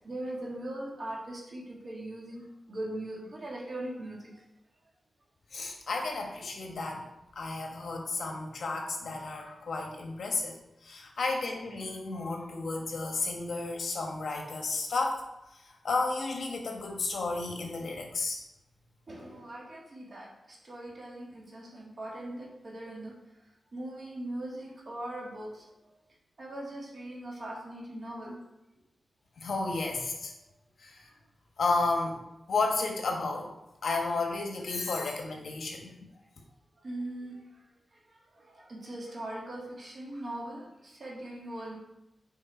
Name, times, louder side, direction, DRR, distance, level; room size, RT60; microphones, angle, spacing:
voice 1, 0.0-4.2 19.1-23.1 23.7-25.7 26.4-28.4 36.8-37.4 38.1-41.8, right 1 dB, 45° right, -3 dB, 2.0 m, -40 dB
voice 2, 5.5-7.1 7.3-10.5 10.8-15.2 15.5-18.4 29.4-30.3 30.8-31.1 31.6-32.2 32.5-33.5 33.8-35.9, left 3 dB, 70° left, 1 dB, 1.2 m, -32 dB
6.4 x 4.7 x 4.4 m, 0.91 s
wide cardioid pair, 135°, 0 cm